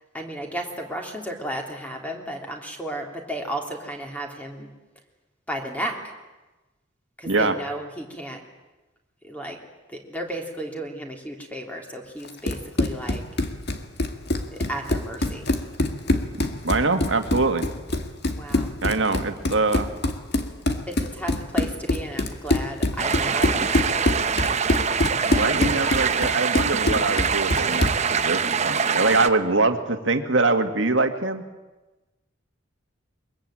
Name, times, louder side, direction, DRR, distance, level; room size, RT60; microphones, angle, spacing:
voice 1, 0.1-4.7 5.5-6.0 7.2-8.4 9.3-9.6 9.9-13.2 14.5-15.5 18.4-18.7 20.9-24.0 24.4-24.6, right 1 dB, 5° left, 2 dB, 3.3 m, -33 dB
voice 2, 7.3-7.6 16.4-17.7 18.8-19.9 25.3-27.9 28.2-31.4, right 3 dB, 65° right, 7 dB, 2.0 m, -23 dB
Run, 12.2-28.1, left 1 dB, 55° left, 2.0 m, -25 dB
sound 1, 23.0-29.3, right 6 dB, 35° right, 0.8 m, -24 dB
23.0 x 22.0 x 8.9 m, 1.1 s
head